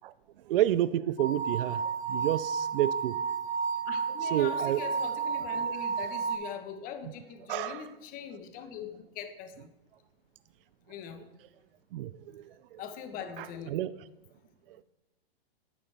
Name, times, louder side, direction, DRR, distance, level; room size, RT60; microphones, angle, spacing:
voice 1, 0.5-1.8 2.1-3.2 4.2-4.8 7.5-7.9 11.9-12.8 13.4-13.9, right 13 dB, 60° right, 15 dB, 0.5 m, -30 dB
sound 1, 1.2-6.3, right 6 dB, 65° left, 3.7 m, -32 dB
voice 2, 3.9-9.7 10.9-11.2 12.8-13.8, left 7 dB, 30° left, 8 dB, 1.0 m, -42 dB
11.5 x 10.0 x 3.4 m, 0.93 s
hypercardioid pair, 135°, 31 cm